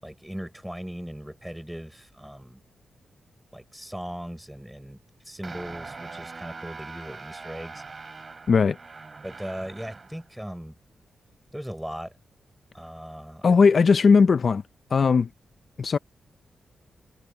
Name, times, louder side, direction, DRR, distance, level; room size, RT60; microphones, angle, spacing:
voice 1, 0.0-2.6 3.5-5.0 5.2-7.8 9.2-10.8 11.5-12.1 12.7-13.5, equal, 5° right, 4.7 m, -38 dB
sound 1, 5.4-10.3, right 4 dB, 35° right, 3.1 m, -42 dB
voice 2, 13.4-14.6 14.9-15.3 15.8-16.0, left 5 dB, 45° left, 0.5 m, -18 dB
wide cardioid pair, 130°, 0 cm